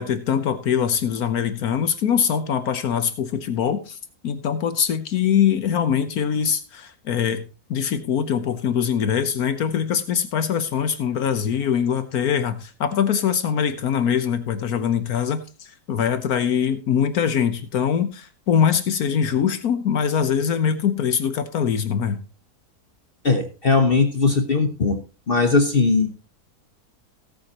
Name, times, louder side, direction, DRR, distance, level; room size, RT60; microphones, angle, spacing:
voice 1, 0.0-4.0 4.2-7.4 7.7-22.2, left 8 dB, 70° left, 11 dB, 1.4 m, -23 dB
voice 2, 23.2-25.0 25.3-26.1, left 4 dB, 40° left, 6 dB, 1.2 m, -19 dB
18.0 x 7.9 x 2.9 m, 0.33 s
omnidirectional pair, 1.7 m